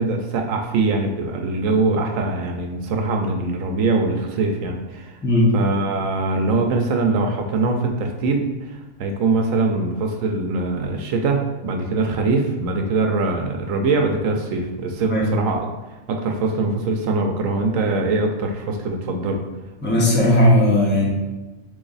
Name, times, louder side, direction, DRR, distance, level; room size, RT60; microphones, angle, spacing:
voice 1, 0.0-5.2 5.5-15.7 16.1-19.4, right 3 dB, 75° right, 3 dB, 0.9 m, -22 dB
voice 2, 19.8-21.1, left 1 dB, 10° left, -4 dB, 0.7 m, -16 dB
3.8 x 3.2 x 3.9 m, 1.1 s
omnidirectional pair, 1.4 m